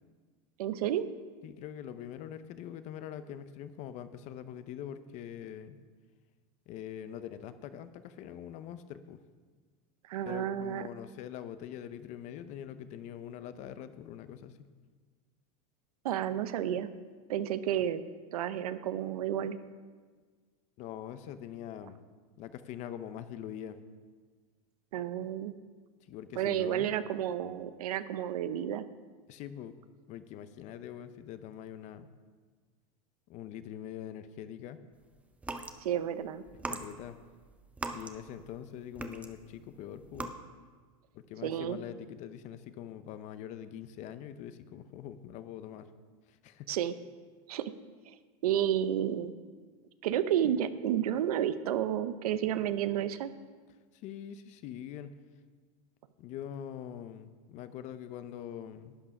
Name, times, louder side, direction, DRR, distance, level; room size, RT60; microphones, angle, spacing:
voice 1, 0.6-1.0 10.1-10.9 16.0-16.9 17.3-18.0 18.3-19.6 24.9-25.6 26.4-28.9 35.8-36.4 41.4-41.8 46.7-46.9 47.5-47.7 48.4-49.3 50.0-53.3, right 10 dB, 85° right, 13 dB, 0.7 m, -31 dB
voice 2, 1.4-5.8 6.7-9.2 10.2-14.6 20.8-22.0 22.4-23.8 26.1-26.9 29.3-29.7 30.1-32.1 33.3-34.8 36.7-37.2 37.9-40.4 41.1-45.9 46.3-46.7 54.0-55.2 56.2-59.0, left 10 dB, 40° left, 12 dB, 0.7 m, -43 dB
sound 1, 35.3-35.8 36.5-38.6 38.9-39.6 40.0-40.3, right 2 dB, 5° right, 0.6 m, -39 dB
11.5 x 8.7 x 5.4 m, 1.5 s
supercardioid pair, 140°, 19 cm